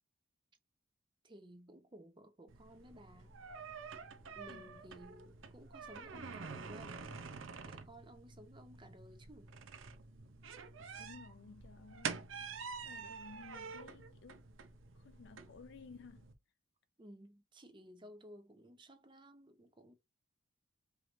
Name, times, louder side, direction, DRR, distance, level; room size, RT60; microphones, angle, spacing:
voice 1, 1.2-3.4 4.2-7.1 7.7-9.5 17.0-19.9, equal, 25° right, 0.7 m, -56 dB
sound 1, 2.5-16.3, right 5 dB, 75° right, 0.7 m, -48 dB
voice 2, 4.5-4.9 11.0-12.3 12.8-14.5 14.9-16.3, left 4 dB, 60° left, 0.4 m, -56 dB
4.8 x 3.2 x 2.5 m
head